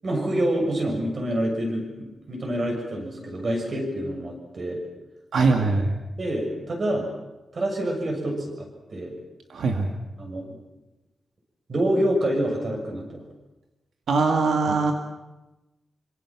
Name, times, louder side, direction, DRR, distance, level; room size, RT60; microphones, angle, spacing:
voice 1, 0.0-4.8 6.2-7.1 7.5-9.1 10.2-10.6 11.7-13.2 14.7-14.8, right 1 dB, 40° right, 1 dB, 7.1 m, -27 dB
voice 2, 5.3-6.0 9.5-9.9 14.1-14.9, right 4 dB, 85° right, 3 dB, 2.2 m, -21 dB
26.5 x 25.5 x 6.1 m, 1.0 s
wide cardioid pair, 180°, 0 cm